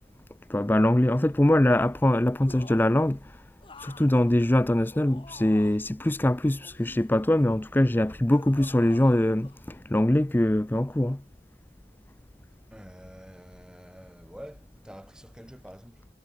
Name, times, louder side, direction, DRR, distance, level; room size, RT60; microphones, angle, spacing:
voice 1, 0.5-3.4 3.8-11.2, left 1 dB, 10° left, 0.5 m, -23 dB
sound 1, 2.5-3.0 3.6-5.9 6.6-7.7 8.3-9.2 9.4-9.6, left 3 dB, 30° left, 1.4 m, -48 dB
voice 2, 12.7-16.1, equal, 5° right, 3.7 m, -47 dB
head